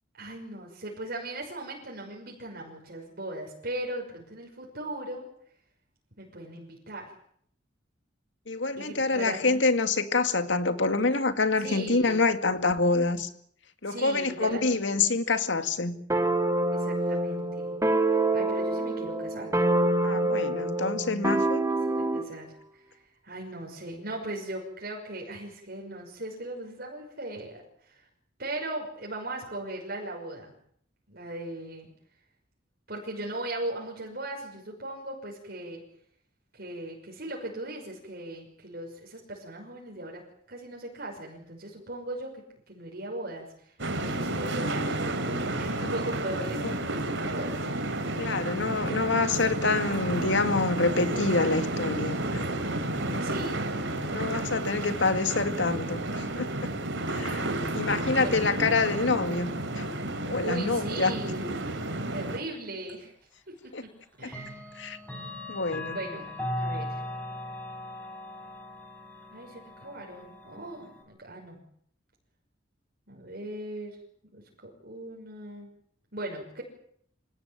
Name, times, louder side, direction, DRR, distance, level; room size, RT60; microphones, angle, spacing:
voice 1, 0.2-5.3 6.2-7.1 8.7-9.6 11.6-12.2 13.9-14.8 16.7-17.7 18.3-19.5 21.3-21.4 22.0-22.5 22.9-28.0 28.4-30.5 31.1-31.9 32.9-35.8 36.5-42.4 42.7-43.5 43.9-44.8 45.4-47.7 53.2-53.6 58.2-58.6 60.4-61.7 62.1-63.1 63.5-63.7 64.2-64.7 65.9-66.3 66.6-67.0 69.3-71.6 73.1-74.0 74.3-75.7 76.1-76.6, right 1 dB, 55° right, 6.0 m, -38 dB
voice 2, 8.5-13.3 13.8-16.0 20.0-21.7 45.8-45.9 46.6-46.7 48.2-52.5 54.1-56.5 57.1-59.9 60.2-61.1 63.7-63.8 64.2-64.3 64.8-65.0 65.5-66.0, left 3 dB, 70° left, 2.1 m, -27 dB
sound 1, 16.1-22.3, right 2 dB, 15° right, 1.5 m, -26 dB
sound 2, 43.8-62.4, right 1 dB, 75° right, 3.5 m, -31 dB
Clock, 62.9-63.0 64.2-71.0, left 1 dB, 10° left, 5.4 m, -38 dB
26.5 x 17.5 x 9.1 m
head